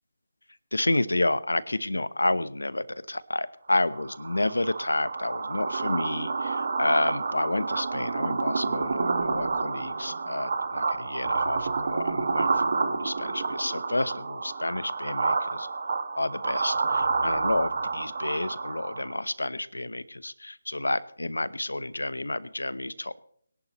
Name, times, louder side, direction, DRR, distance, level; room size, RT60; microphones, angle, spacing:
voice 1, 0.7-15.7 16.2-23.2, left 2 dB, 90° left, 17 dB, 0.9 m, -30 dB
sound 1, 3.9-19.2, right 4 dB, 55° right, 1.8 m, -29 dB
22.5 x 11.0 x 3.1 m, 0.62 s
figure-of-eight pair, 155°, 0 cm